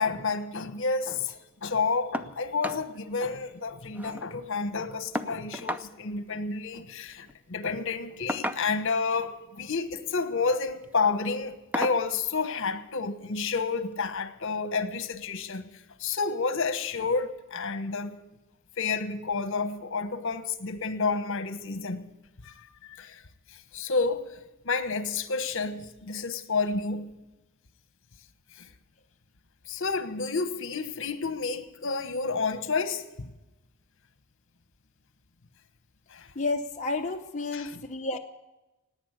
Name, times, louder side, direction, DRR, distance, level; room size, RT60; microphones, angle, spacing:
voice 1, 0.0-15.7 16.0-18.2 18.8-22.0 22.4-23.2 23.5-27.1 28.5-28.7 29.7-33.3 36.1-36.3 37.5-37.8, left 4 dB, 60° left, 1.2 m, -30 dB
sound 1, 2.1-2.3 2.6-2.8 3.2-3.3 3.6-4.3 5.1-5.9 7.1-7.3 8.3-9.0 10.0-10.3 10.8-10.9 11.7-12.1 13.3-13.4 13.9-14.0, equal, 10° right, 0.6 m, -34 dB
voice 2, 36.4-38.2, left 3 dB, 35° left, 0.7 m, -31 dB
17.5 x 9.6 x 8.3 m
head